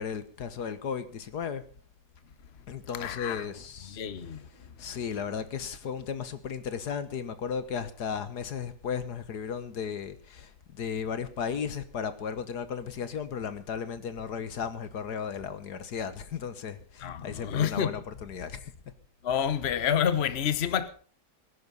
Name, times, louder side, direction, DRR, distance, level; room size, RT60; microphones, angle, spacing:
voice 1, 0.0-1.6 2.7-4.0 4.5-10.5 10.8-18.7, left 7 dB, 70° left, 1.8 m, -35 dB
voice 2, 3.0-3.5 3.9-4.4 17.0-18.0 19.2-20.9, left 8 dB, 45° left, 1.2 m, -28 dB
20.5 x 11.0 x 5.4 m
omnidirectional pair, 1.8 m